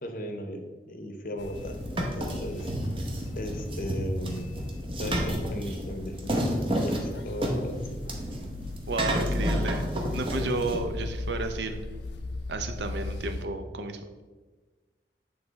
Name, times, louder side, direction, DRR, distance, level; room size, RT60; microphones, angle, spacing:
voice 1, 0.0-2.7 3.3-4.5 5.0-6.4 6.8-8.0, equal, 50° left, 6 dB, 0.7 m, -37 dB
sound 1, 1.4-13.5, left 2 dB, 85° left, 0.5 m, -36 dB
sound 2, 1.5-10.8, right 1 dB, 30° right, 0.8 m, -31 dB
voice 2, 8.9-11.8 12.5-14.2, right 3 dB, 80° right, 7 dB, 0.6 m, -32 dB
8.1 x 3.3 x 4.0 m, 1.3 s
head